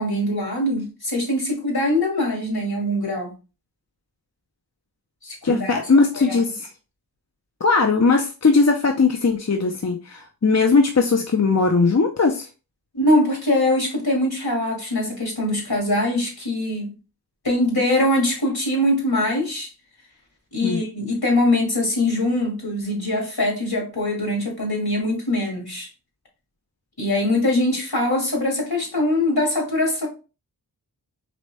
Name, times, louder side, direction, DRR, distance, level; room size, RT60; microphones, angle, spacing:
voice 1, 0.0-3.3 5.2-5.8 6.1-6.4 12.9-16.9 17.4-19.7 20.5-25.9 27.0-30.1, left 1 dB, 70° left, 2.1 m, -22 dB
voice 2, 5.4-6.7 7.6-12.5 20.6-20.8, left 4 dB, 45° left, 0.6 m, -19 dB
4.1 x 3.2 x 3.3 m
wide cardioid pair, 45°, 39 cm